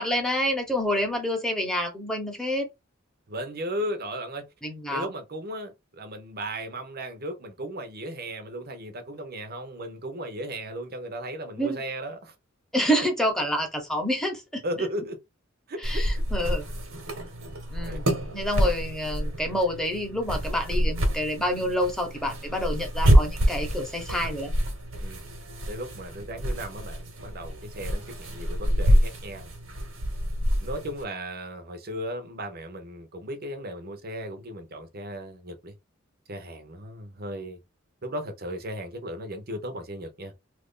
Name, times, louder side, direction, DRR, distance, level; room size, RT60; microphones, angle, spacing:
voice 1, 0.0-2.7 4.6-5.1 11.6-11.8 12.7-14.6 15.8-16.7 17.7-18.0 18.3-24.5, equal, 5° left, 1.0 m, -28 dB
voice 2, 3.3-4.5 4.9-12.3 14.6-15.2 15.7-16.2 17.8-18.0 25.0-25.2 25.7-29.5 30.6-35.7 36.3-37.6 38.0-40.3, right 1 dB, 50° right, 0.8 m, -36 dB
sound 1, 15.8-31.0, equal, 80° right, 1.3 m, -27 dB
3.0 x 2.6 x 3.7 m
head